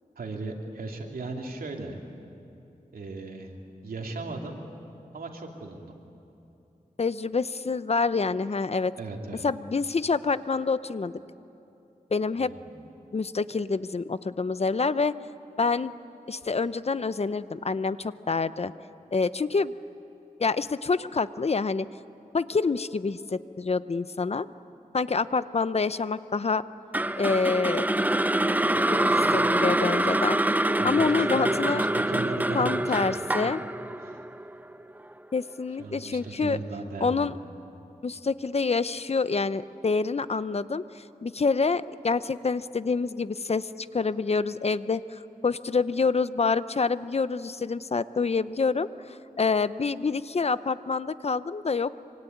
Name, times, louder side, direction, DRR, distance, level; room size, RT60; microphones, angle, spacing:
voice 1, 0.2-2.0 2.9-3.5 3.8-4.7 5.1-5.9 9.0-9.4 12.4-12.8 30.8-33.5 34.0-34.2 35.8-37.3, right 3 dB, 85° right, 1 dB, 2.9 m, -37 dB
voice 2, 7.0-8.9 9.4-11.1 12.1-12.5 13.1-15.1 15.6-15.9 16.3-18.7 19.1-19.7 20.4-21.9 22.3-24.5 24.9-26.6 27.2-27.9 28.9-30.4 30.8-31.8 32.5-33.6 35.3-36.6 37.0-37.3 38.0-43.7 43.9-48.9 49.4-51.9, left 4 dB, 45° left, 14 dB, 0.7 m, -27 dB
sound 1, 26.9-35.1, right 1 dB, 10° right, 0.6 m, -25 dB
25.5 x 25.0 x 9.4 m, 2.9 s
wide cardioid pair, 75°, 15 cm